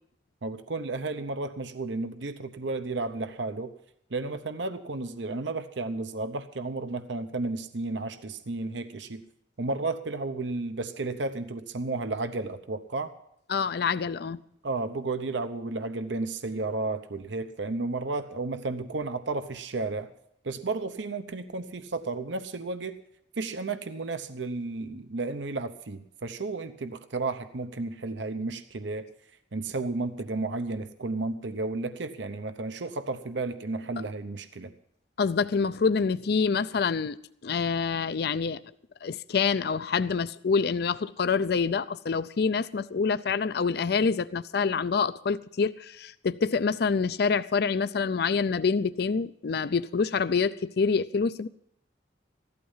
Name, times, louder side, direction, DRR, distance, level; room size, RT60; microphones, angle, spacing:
voice 1, 0.4-3.7 4.1-9.2 9.6-13.1 14.6-20.1 20.4-22.9 23.4-29.0 29.5-34.7, right 3 dB, 75° right, 0.9 m, -33 dB
voice 2, 13.5-14.4 35.2-37.2 37.4-38.6 39.0-51.5, left 5 dB, 60° left, 0.5 m, -26 dB
15.5 x 12.5 x 5.6 m
head